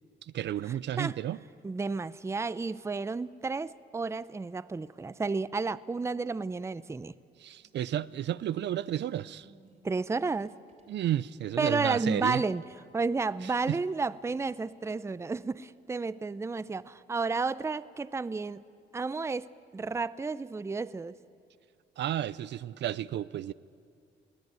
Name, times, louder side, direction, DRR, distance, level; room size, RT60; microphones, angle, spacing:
voice 1, 0.2-1.4 7.4-9.5 10.9-12.4 13.4-13.8 22.0-23.5, right 11 dB, 65° right, 0.5 m, -32 dB
voice 2, 1.6-7.1 9.8-10.5 11.6-12.6 12.9-18.6 18.9-21.2, right 4 dB, 15° right, 0.5 m, -32 dB
sound 1, 6.8-6.9 7.6-11.1 11.9-12.0 12.7-12.8 13.4-13.5 14.2-14.3 14.9-15.0 15.7-16.5 17.0-17.3, right 1 dB, 40° right, 3.6 m, -61 dB
22.5 x 16.5 x 9.3 m
cardioid pair, 90°, 20 cm